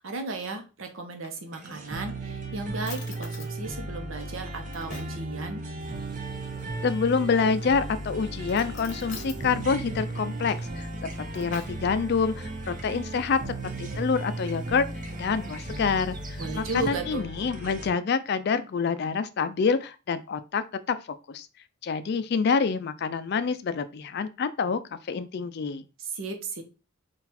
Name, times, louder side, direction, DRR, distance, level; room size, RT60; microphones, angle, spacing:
voice 1, 0.0-5.6 16.4-17.3 26.0-26.6, right 3 dB, 70° right, 4 dB, 0.9 m, -35 dB
Drawer open or close, 0.9-1.9 2.5-2.6 2.8-3.5 4.2-5.2 7.1-7.7 8.4-9.4 10.8-11.9, left 4 dB, 35° left, 0.8 m, -46 dB
sound 1, 1.5-17.9, right 2 dB, 40° right, 0.8 m, -36 dB
sound 2, 5.8-16.9, right 2 dB, 20° right, 0.4 m, -46 dB
voice 2, 6.8-14.9 15.2-21.0 21.3-21.5 21.8-25.8, left 5 dB, 50° left, 12 dB, 0.4 m, -27 dB
3.9 x 2.4 x 4.1 m, 0.31 s
head